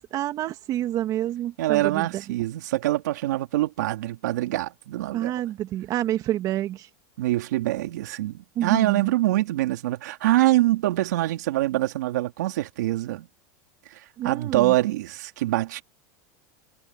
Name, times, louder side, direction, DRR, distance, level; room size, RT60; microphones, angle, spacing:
voice 1, 0.0-2.1 5.1-6.9 8.6-9.1 14.2-14.7, right 13 dB, 40° right, 1.9 m, -28 dB
voice 2, 1.6-5.4 7.2-13.3 13.9-15.8, right 16 dB, 80° right, 3.0 m, -24 dB
supercardioid pair, 130°, 9 cm